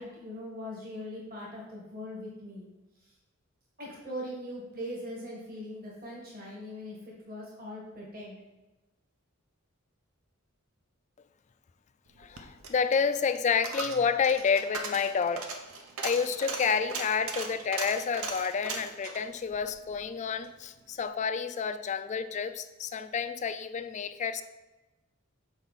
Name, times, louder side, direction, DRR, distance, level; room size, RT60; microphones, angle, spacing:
voice 1, 0.0-2.7 3.0-3.1 3.8-8.4, left 1 dB, 45° right, -4 dB, 1.6 m, -41 dB
Coin (dropping), 12.1-20.6 20.9-21.0, right 4 dB, 80° right, 0.9 m, -39 dB
voice 2, 12.2-15.5 16.0-24.4, left 6 dB, 35° left, 11 dB, 0.3 m, -29 dB
7.0 x 4.5 x 4.1 m, 1.1 s
head